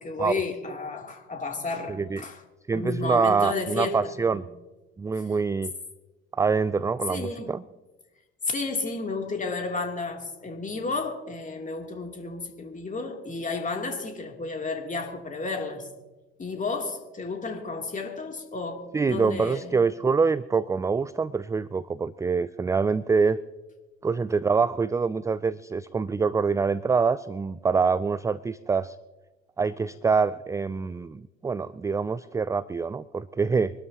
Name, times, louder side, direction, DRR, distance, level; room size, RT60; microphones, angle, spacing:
voice 1, 0.0-2.4 2.7-4.4 5.1-5.3 7.1-7.6 8.4-15.9 16.4-19.8, left 3 dB, 25° left, 2 dB, 3.1 m, -32 dB
voice 2, 1.9-2.2 2.7-4.4 5.0-5.7 6.3-7.6 18.9-23.4 24.0-29.0 29.6-33.7, right 5 dB, 10° right, 18 dB, 0.3 m, -25 dB
25.0 x 12.5 x 2.9 m, 1.1 s
figure-of-eight pair, 55°, 31 cm